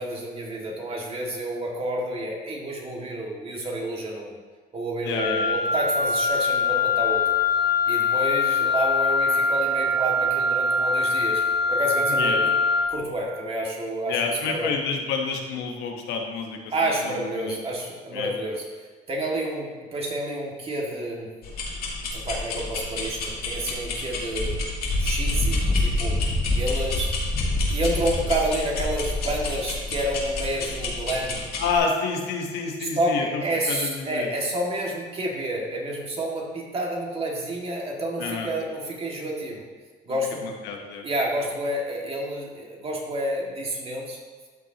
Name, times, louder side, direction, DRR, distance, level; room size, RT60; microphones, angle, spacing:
voice 1, 0.0-4.4 4.7-7.2 7.9-11.4 11.7-12.5 12.9-14.7 16.7-21.3 22.1-24.6 25.0-26.2 26.5-27.1 27.7-31.4 32.8-39.7 40.0-40.5 41.0-44.2, right 1 dB, 35° right, -2 dB, 2.1 m, -29 dB
voice 2, 5.0-5.6 12.1-12.4 14.1-16.6 17.4-17.6 18.1-18.3 31.6-33.4 33.7-34.3 38.2-38.5 40.4-41.0, left 5 dB, 90° left, 2 dB, 1.2 m, -28 dB
Wind instrument woodwind instrument, 5.2-12.9, left 3 dB, 65° right, 1.6 m, -23 dB
sound 1, 21.4-31.8, left 3 dB, 65° left, 2.1 m, -32 dB
Wind, 24.3-29.6, left 1 dB, 30° left, 2.0 m, -26 dB
13.0 x 6.1 x 3.0 m, 1.4 s
cardioid pair, 110°, 17 cm